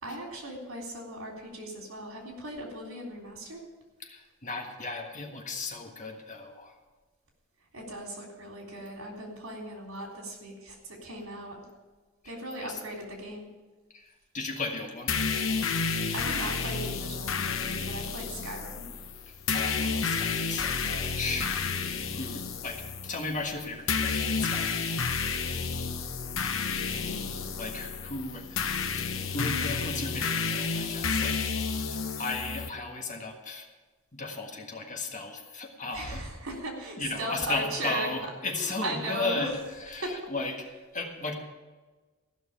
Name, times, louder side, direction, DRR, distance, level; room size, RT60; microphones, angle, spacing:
voice 1, 0.0-3.6 7.7-11.5 12.2-13.5 16.1-18.8 27.0-27.5 35.9-38.1 38.5-39.5 40.0-40.1, right 1 dB, 80° right, 0 dB, 3.5 m, -38 dB
voice 2, 4.0-6.7 12.2-12.8 13.9-15.1 19.5-21.8 22.1-24.9 27.6-28.6 29.3-33.7 34.1-36.2 37.0-40.7 40.9-41.3, left 3 dB, 35° left, 2 dB, 1.6 m, -36 dB
sound 1, 15.1-32.7, left 5 dB, 70° left, 0.9 m, -31 dB
14.5 x 6.2 x 8.9 m, 1.3 s
head